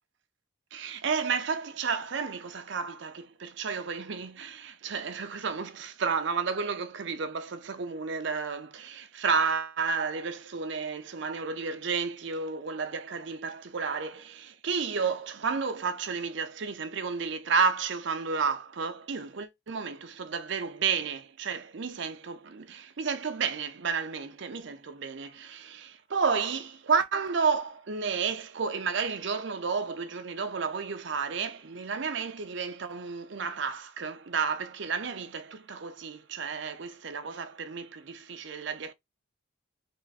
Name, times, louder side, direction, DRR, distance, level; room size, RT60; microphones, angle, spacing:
voice 1, 0.7-38.9, right 5 dB, 60° right, 0.6 m, -31 dB
3.5 x 2.5 x 4.0 m
head